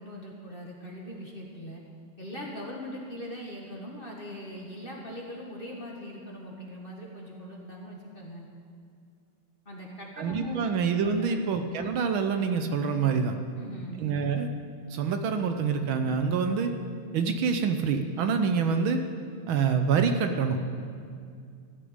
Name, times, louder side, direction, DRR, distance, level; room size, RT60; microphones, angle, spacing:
voice 1, 0.0-1.8 2.2-8.5 9.7-10.7 11.2-11.5 13.6-14.0, equal, 25° left, -2 dB, 1.6 m, -41 dB
voice 2, 10.2-13.3 14.0-14.5 14.9-16.7 17.1-19.0 19.5-20.7, right 5 dB, 70° right, 7 dB, 1.5 m, -26 dB
15.0 x 6.6 x 9.5 m, 2.3 s
omnidirectional pair, 2.4 m